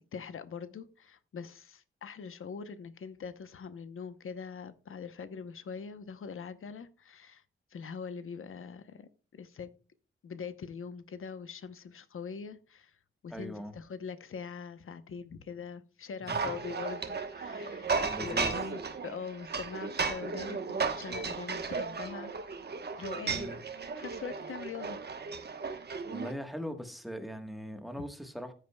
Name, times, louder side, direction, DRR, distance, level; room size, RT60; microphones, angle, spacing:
voice 1, 0.1-7.4 7.7-9.7 10.2-12.9 13.2-17.9 18.2-22.3 23.0-23.5 23.9-25.0, left 6 dB, 85° left, 0.9 m, -43 dB
voice 2, 13.3-13.7 16.2-16.4 18.0-18.5 23.3-23.6 26.1-28.5, equal, ahead, 1.3 m, -40 dB
sound 1, 16.3-26.3, right 4 dB, 50° right, 1.1 m, -35 dB
14.5 x 8.5 x 2.3 m
wide cardioid pair, 155°, 21 cm